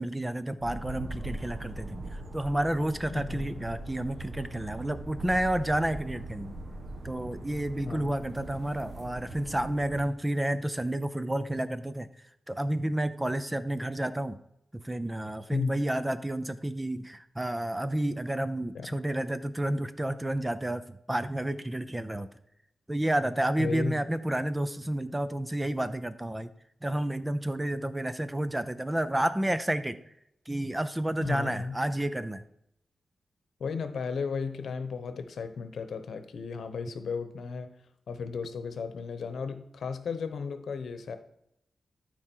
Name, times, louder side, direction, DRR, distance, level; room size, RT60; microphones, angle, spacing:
voice 1, 0.0-6.6 7.0-12.1 12.5-14.4 14.7-22.3 22.9-26.5 26.8-30.0 30.5-32.4, right 1 dB, 15° right, 12 dB, 0.5 m, -30 dB
sound 1, 0.6-10.0, right 2 dB, 55° right, 1.5 m, -41 dB
voice 2, 3.1-3.6 7.8-8.2 15.5-15.7 18.7-19.0 23.6-24.0 31.2-31.8 33.6-37.7 38.1-41.2, left 5 dB, 75° left, 10 dB, 0.9 m, -34 dB
12.5 x 4.8 x 4.5 m, 0.78 s
wide cardioid pair, 100°, 0 cm